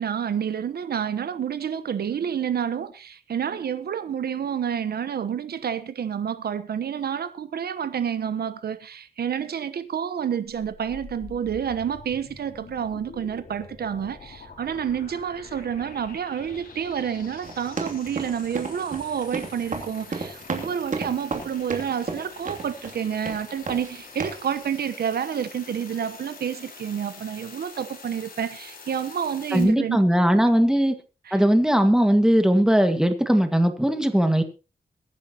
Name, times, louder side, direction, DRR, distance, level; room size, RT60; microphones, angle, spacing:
voice 1, 0.0-30.0 31.2-31.4, right 8 dB, 80° right, 1.0 m, -29 dB
sound 1, 10.5-29.6, left 4 dB, 65° left, 5.2 m, -45 dB
sound 2, 17.4-23.0 23.3-23.9 24.2-24.5, right 4 dB, 50° right, 2.8 m, -32 dB
voice 2, 29.5-30.9 31.3-34.4, equal, 5° right, 1.7 m, -19 dB
22.5 x 10.5 x 2.9 m
wide cardioid pair, 110°, 16 cm